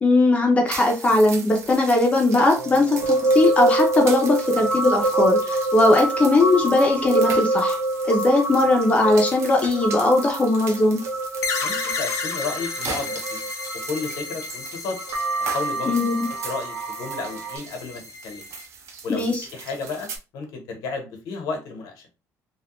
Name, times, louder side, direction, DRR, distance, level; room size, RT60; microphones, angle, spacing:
voice 1, 0.0-7.8 8.1-11.0 15.9-16.3 19.1-19.5, left 2 dB, 20° left, 1 dB, 0.5 m, -19 dB
sound 1, 0.7-20.2, right 5 dB, 50° right, 0.6 m, -39 dB
sound 2, 2.5-14.3 14.9-17.6, right 2 dB, 75° right, 1.1 m, -26 dB
sound 3, 11.4-18.7, left 4 dB, 60° left, 0.6 m, -33 dB
voice 2, 11.6-13.4 13.9-15.0 15.4-15.9 16.4-18.5 19.0-22.1, left 4 dB, 85° left, 4 dB, 1.0 m, -32 dB
3.1 x 2.2 x 2.9 m, 0.30 s
cardioid pair, 175°, 6 cm